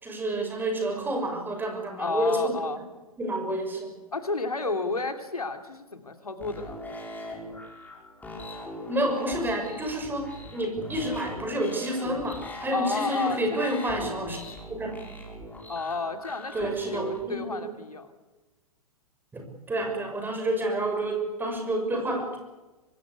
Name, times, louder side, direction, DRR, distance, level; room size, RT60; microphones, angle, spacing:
voice 1, 0.0-2.6 3.2-4.0 8.9-14.4 14.7-15.0 16.5-17.7 19.3-22.4, right 1 dB, 10° right, 4 dB, 6.1 m, -29 dB
voice 2, 2.0-2.8 4.1-6.8 12.7-14.3 15.7-18.1, left 3 dB, 80° left, 7 dB, 2.9 m, -32 dB
sound 1, 6.4-17.2, left 1 dB, 10° left, 6.0 m, -40 dB
24.5 x 20.5 x 8.3 m, 1.1 s
figure-of-eight pair, 105°, 19 cm